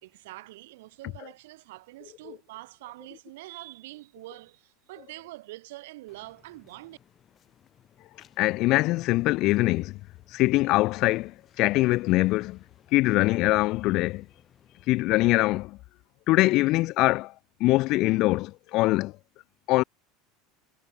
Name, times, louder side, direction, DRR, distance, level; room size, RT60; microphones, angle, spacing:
voice 1, 0.0-7.0, right 19 dB, 75° right, 1.7 m, -45 dB
sound 1, 6.1-14.9, left 9 dB, 40° left, 5.7 m, -60 dB
voice 2, 8.4-10.0 10.3-12.6 12.9-14.2 14.9-15.8 16.3-17.3 17.6-19.1 19.7-19.8, left 19 dB, 55° left, 0.3 m, -23 dB
hypercardioid pair, 80°, 0 cm